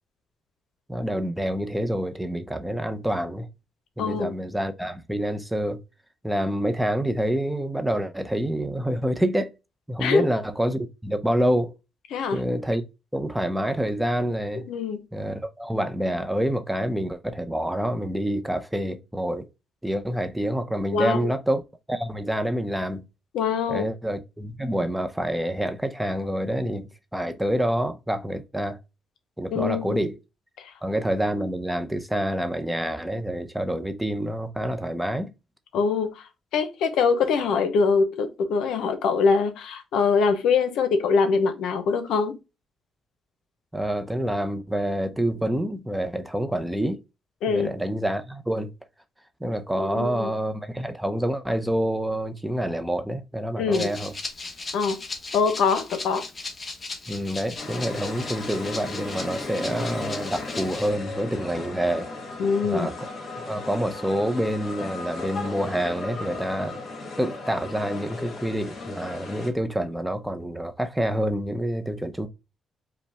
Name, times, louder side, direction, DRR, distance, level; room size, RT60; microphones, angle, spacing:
voice 1, 0.9-3.5 4.0-5.8 6.2-9.5 9.9-11.7 12.3-12.8 13.1-14.6 15.1-19.5 19.8-21.6 21.9-23.1 23.7-28.8 29.4-30.2 30.8-35.3 43.7-47.0 47.5-48.7 49.4-54.1 57.1-62.1 62.6-63.1 63.5-66.8 67.2-72.3, right 1 dB, 5° right, 0.6 m, -27 dB
voice 2, 4.0-4.4 10.0-10.2 12.1-12.4 14.5-15.0 20.9-21.3 23.3-23.9 29.5-30.0 30.6-30.7 35.7-36.3 36.5-42.3 47.4-47.7 49.8-50.3 53.6-53.9 54.7-55.0 55.3-56.2 62.4-62.9, left 5 dB, 85° left, 0.7 m, -23 dB
Rattle (instrument), 53.7-60.9, left 3 dB, 35° left, 1.1 m, -37 dB
sound 1, 57.6-69.5, left 3 dB, 55° left, 1.7 m, -36 dB
5.1 x 2.2 x 3.4 m
cardioid pair, 90°, 0 cm